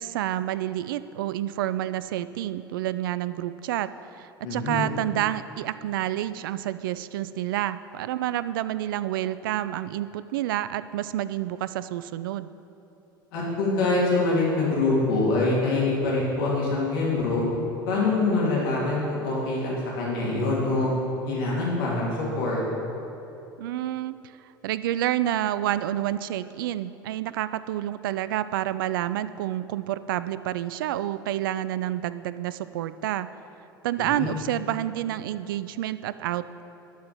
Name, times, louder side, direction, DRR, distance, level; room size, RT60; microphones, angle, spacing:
voice 1, 0.0-12.5 23.6-24.1 24.6-33.3 33.8-36.6, right 13 dB, 70° right, 15 dB, 0.4 m, -29 dB
voice 2, 4.4-4.9 13.3-17.4 17.9-20.9 21.3-22.6 34.0-34.3, left 3 dB, 70° left, -5 dB, 2.6 m, -25 dB
12.0 x 4.8 x 7.4 m, 2.9 s
figure-of-eight pair, 70°, 12 cm